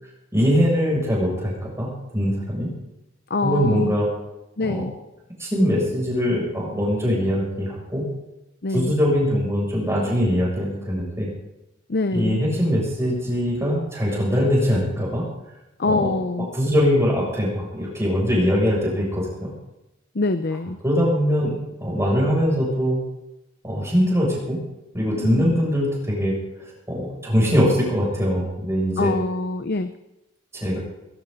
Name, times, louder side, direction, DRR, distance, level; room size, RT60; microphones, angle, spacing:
voice 1, 0.3-2.7 3.4-4.1 4.6-4.8 5.4-8.1 8.7-11.3 12.1-15.2 15.8-16.1 16.5-19.5 20.8-23.0 23.6-24.6 24.9-26.4 26.9-29.1 30.5-30.8, equal, 15° right, -3 dB, 7.7 m, -22 dB
voice 2, 3.3-4.0 4.6-4.9 8.6-9.0 11.9-12.4 15.8-16.5 20.1-20.8 25.2-25.6 29.0-29.9, left 3 dB, 55° left, 10 dB, 0.7 m, -25 dB
20.0 x 17.0 x 4.2 m, 0.94 s
head